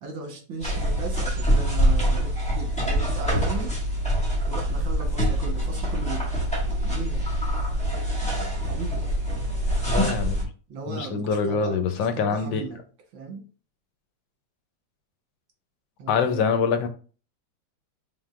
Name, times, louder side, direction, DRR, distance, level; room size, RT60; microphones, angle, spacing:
voice 1, 0.0-3.8 4.4-6.4 6.8-7.2 8.6-8.9 10.7-12.8 13.1-13.4 16.0-16.6, right 4 dB, 85° right, 2 dB, 2.0 m, -37 dB
sound 1, 0.6-10.4, equal, 5° left, 1.4 m, -25 dB
voice 2, 9.9-10.5 10.9-12.6 16.1-16.9, left 5 dB, 85° left, 8 dB, 1.4 m, -25 dB
4.8 x 3.7 x 2.4 m, 0.38 s
omnidirectional pair, 2.1 m